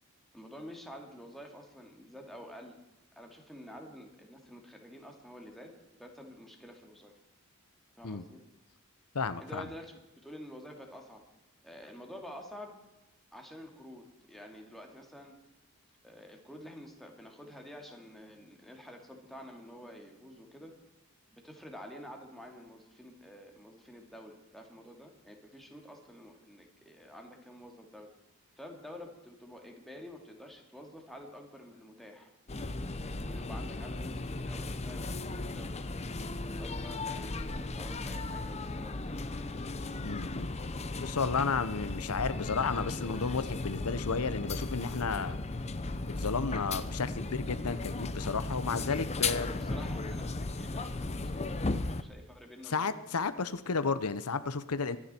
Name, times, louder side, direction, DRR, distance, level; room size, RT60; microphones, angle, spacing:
voice 1, 0.3-2.8 3.2-7.1 8.0-8.4 9.4-11.2 11.6-12.8 13.3-15.3 16.0-20.7 21.3-28.1 28.6-32.3 33.2-35.8 36.4-39.2 49.2-53.5, equal, ahead, 1 dB, 2.3 m, -49 dB
voice 2, 9.1-9.6 40.0-40.5 41.0-45.4 46.1-49.5 52.7-55.0, left 4 dB, 90° left, 12 dB, 0.8 m, -32 dB
sound 1, 32.5-52.0, left 2 dB, 30° left, 0.8 m, -36 dB
24.0 x 10.0 x 4.4 m, 0.98 s
head